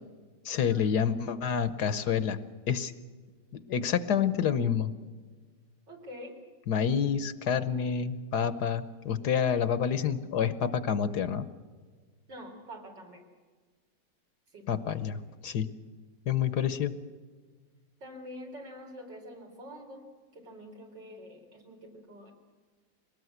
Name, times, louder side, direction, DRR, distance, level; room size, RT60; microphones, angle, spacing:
voice 1, 0.4-2.4 2.7-2.9 3.7-4.9 6.7-11.5 14.7-15.7 16.3-16.9, left 7 dB, 65° left, 13 dB, 1.4 m, -28 dB
voice 2, 5.9-6.4 12.3-13.2 14.5-15.1 18.0-20.1 20.3-22.3, equal, 70° right, 1 dB, 4.4 m, -46 dB
23.0 x 19.0 x 8.0 m, 1.5 s
omnidirectional pair, 2.0 m